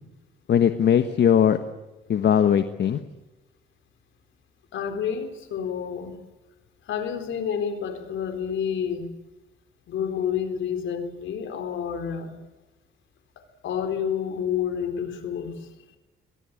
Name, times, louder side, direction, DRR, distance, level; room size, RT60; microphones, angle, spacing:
voice 1, 0.5-1.6 2.1-3.0, left 9 dB, 60° left, 9 dB, 1.3 m, -19 dB
voice 2, 4.7-6.2 6.8-9.1 9.9-12.3 13.4-15.7, left 8 dB, 75° left, 8 dB, 4.1 m, -29 dB
22.0 x 21.5 x 8.6 m, 1.1 s
cardioid pair, 90°, 20 cm